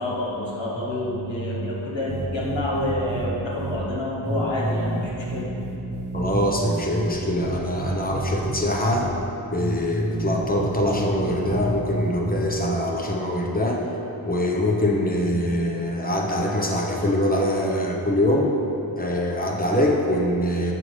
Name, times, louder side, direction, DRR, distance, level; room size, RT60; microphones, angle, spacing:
voice 1, 0.0-5.5, left 1 dB, 60° left, -5 dB, 1.4 m, -28 dB
sound 1, 2.1-3.3 3.6-3.8 4.2-7.1 7.4-8.6 8.9-9.1 9.6-12.4, right 1 dB, 20° right, 0.9 m, -28 dB
voice 2, 6.1-9.1 9.5-13.8 14.3-18.5 19.0-20.7, left 1 dB, 20° left, -1 dB, 0.8 m, -23 dB
7.6 x 5.4 x 3.2 m, 2.9 s
wide cardioid pair, 55°, 49 cm